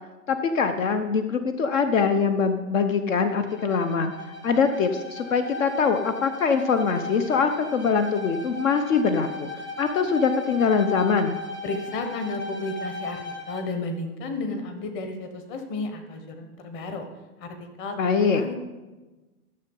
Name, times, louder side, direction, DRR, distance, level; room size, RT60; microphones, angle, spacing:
voice 1, 0.3-4.1 4.4-9.5 9.8-11.4 18.0-18.4, left 5 dB, 60° left, 8 dB, 1.0 m, -23 dB
Bowed string instrument, 3.2-13.7, left 2 dB, 10° left, 0.7 m, -37 dB
voice 2, 11.6-13.2 13.5-17.1 17.4-18.5, left 3 dB, 25° left, 6 dB, 1.3 m, -33 dB
13.0 x 6.9 x 5.5 m, 1.2 s
hypercardioid pair, 140°, 45 cm